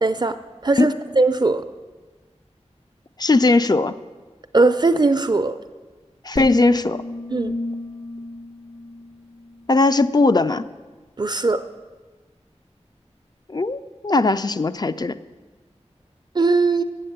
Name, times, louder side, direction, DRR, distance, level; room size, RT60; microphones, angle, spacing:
voice 1, 0.0-0.4 0.6-1.6 4.5-5.6 7.3-7.5 11.2-11.6 16.3-16.8, right 3 dB, 40° right, 9 dB, 0.4 m, -19 dB
voice 2, 3.2-3.9 6.2-7.0 9.7-10.7 13.5-15.2, left 3 dB, 35° left, 12 dB, 0.4 m, -18 dB
sound 1, 6.4-9.7, left 1 dB, 75° left, 1.2 m, -33 dB
7.7 x 7.6 x 7.9 m, 1.3 s
wide cardioid pair, 65°, 12 cm